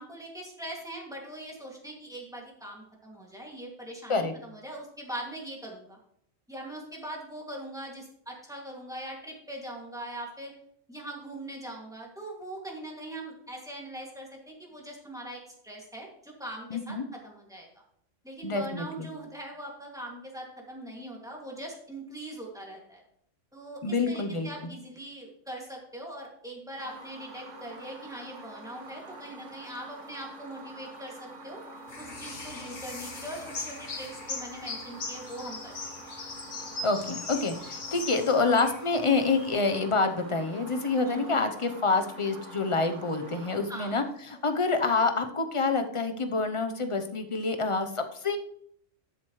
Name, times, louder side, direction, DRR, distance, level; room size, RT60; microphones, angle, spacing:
voice 1, 0.0-6.0 6.5-10.5 10.9-17.0 17.2-17.7 18.2-23.0 23.5-31.6 32.0-35.7 41.0-41.4 43.7-44.1, right 1 dB, 5° right, -2 dB, 2.4 m, -41 dB
voice 2, 16.7-17.0 18.4-19.1 23.8-24.7 36.8-48.4, left 3 dB, 30° left, 7 dB, 0.9 m, -27 dB
sound 1, 26.8-44.7, right 2 dB, 70° right, 1.8 m, -46 dB
sound 2, 31.9-39.5, left 3 dB, 50° left, 1.3 m, -40 dB
12.0 x 7.4 x 3.2 m, 0.67 s
omnidirectional pair, 1.3 m